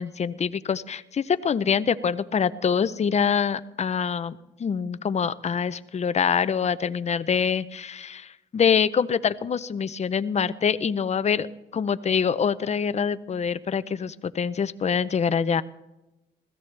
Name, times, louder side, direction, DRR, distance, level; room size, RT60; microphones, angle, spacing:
voice 1, 0.0-11.5 11.7-15.6, left 6 dB, 35° left, 15 dB, 0.6 m, -25 dB
21.0 x 15.5 x 3.3 m, 0.96 s
cardioid pair, 90°, 20 cm